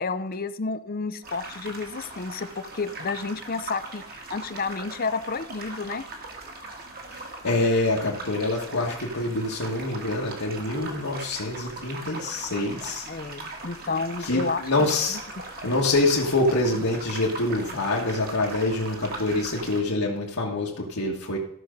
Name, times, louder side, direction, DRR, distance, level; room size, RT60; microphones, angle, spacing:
voice 1, 0.0-6.0 13.1-15.2, left 4 dB, 40° left, 14 dB, 0.5 m, -31 dB
sound 1, 1.2-19.8, right 2 dB, 40° right, 1.8 m, -39 dB
voice 2, 7.1-13.1 14.2-15.2 15.6-21.4, left 2 dB, 75° left, -5 dB, 1.6 m, -26 dB
13.5 x 6.1 x 5.2 m, 0.76 s
head